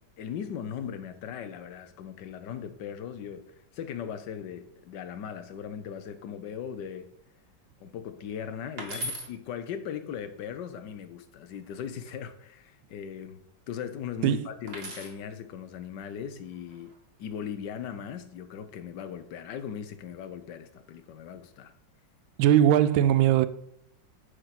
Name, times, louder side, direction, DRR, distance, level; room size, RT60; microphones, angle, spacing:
voice 1, 0.2-7.1 7.8-16.9 17.2-21.7, left 8 dB, 65° left, 1.4 m, -38 dB
sound 1, 8.8-9.3 11.5-12.1 14.7-15.2 16.5-17.0, right 1 dB, 30° right, 1.6 m, -38 dB
voice 2, 22.4-23.5, right 11 dB, 80° right, 1.4 m, -20 dB
9.7 x 4.8 x 5.8 m
omnidirectional pair, 2.2 m